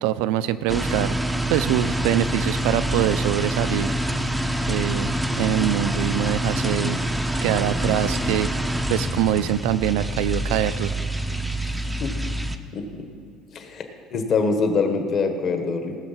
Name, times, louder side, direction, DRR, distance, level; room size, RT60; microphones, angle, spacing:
voice 1, 0.0-1.1 1.5-3.9 4.7-7.0 7.4-8.5 8.9-10.9, right 12 dB, 85° right, 13 dB, 0.5 m, -24 dB
sound 1, 0.7-12.6, equal, 5° right, 0.5 m, -26 dB
voice 2, 12.7-13.0 13.5-13.8 14.1-16.0, left 4 dB, 40° left, 5 dB, 1.2 m, -24 dB
18.5 x 6.5 x 5.7 m, 2.6 s
cardioid pair, 160°, 0 cm